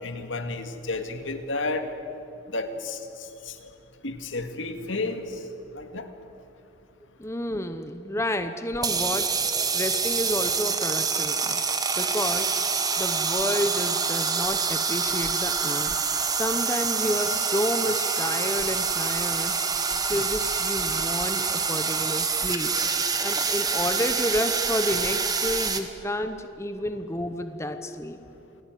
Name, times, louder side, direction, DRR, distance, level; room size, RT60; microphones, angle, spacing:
voice 1, 0.0-1.9 2.5-3.6 4.0-5.4 5.7-6.1, left 3 dB, 80° left, 7 dB, 2.2 m, -32 dB
voice 2, 7.2-9.3 9.7-11.6 12.0-12.6 13.0-16.0 16.3-19.5 20.0-22.7 23.2-28.2, left 1 dB, 15° left, 8 dB, 0.9 m, -30 dB
sound 1, 8.7-25.8, right 5 dB, 20° right, 1.4 m, -26 dB
28.0 x 19.5 x 9.3 m, 2.9 s
head